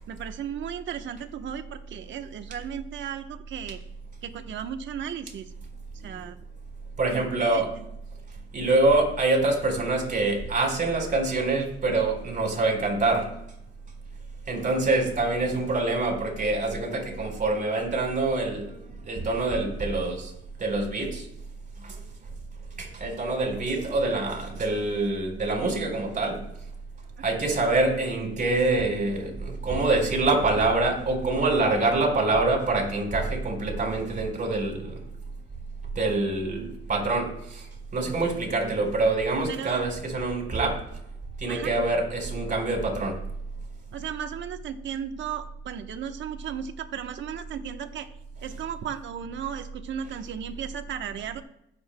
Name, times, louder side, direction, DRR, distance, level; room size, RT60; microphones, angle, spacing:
voice 1, 0.1-3.8 4.2-5.5 5.9-6.4 7.1-7.8 39.5-39.9 41.5-41.7 43.9-48.1 48.4-51.4, right 8 dB, 70° right, 8 dB, 1.0 m, -35 dB
voice 2, 7.0-7.7 8.5-13.3 14.5-20.3 20.6-21.3 21.8-22.0 22.8-26.4 27.2-35.0 35.9-40.8 41.4-43.2, right 2 dB, 40° right, 1 dB, 4.2 m, -25 dB
21.0 x 7.9 x 2.2 m, 0.78 s
cardioid pair, 90°, 20 cm